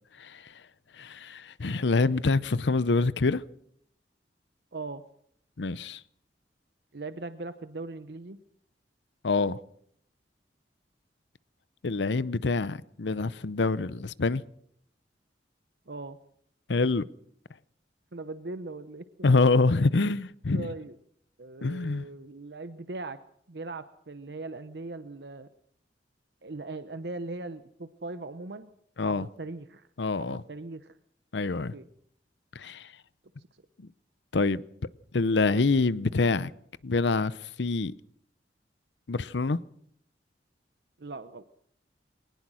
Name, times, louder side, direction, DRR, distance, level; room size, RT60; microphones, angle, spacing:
voice 1, 1.0-3.4 5.6-6.0 9.2-9.6 11.8-14.4 16.7-17.0 19.2-20.7 21.6-22.0 29.0-29.3 30.0-30.4 31.3-31.7 32.6-32.9 34.3-34.6 35.1-36.5 36.8-37.9 39.1-39.6, left 3 dB, 80° left, 0.7 m, -26 dB
voice 2, 4.7-5.0 6.9-8.4 15.9-16.2 18.1-19.0 19.7-20.0 20.5-20.9 21.4-23.2 23.5-25.5 26.4-28.7 29.0-29.9 30.2-31.0 31.7-31.9 41.0-41.4, right 3 dB, 65° right, 0.8 m, -39 dB
22.0 x 19.0 x 6.2 m
head